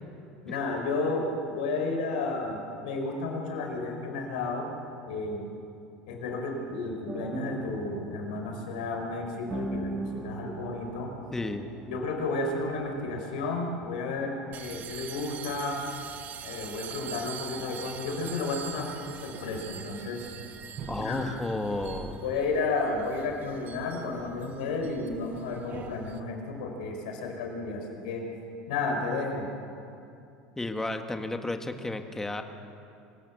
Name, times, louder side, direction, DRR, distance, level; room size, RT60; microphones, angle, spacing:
voice 1, 0.4-4.7 5.1-5.5 6.1-11.1 11.8-15.8 16.4-20.3 21.0-21.3 22.2-28.3 28.7-29.5, left 3 dB, 80° left, 2 dB, 4.8 m, -32 dB
sound 1, 7.1-13.0, right 2 dB, 15° right, 1.8 m, -40 dB
voice 2, 11.3-11.8 20.9-22.2 30.6-32.4, left 2 dB, 10° left, 6 dB, 1.8 m, -32 dB
sound 2, 14.5-26.2, right 8 dB, 45° right, 1.6 m, -43 dB
25.0 x 17.5 x 7.2 m, 2.6 s
supercardioid pair, 100°, 4 cm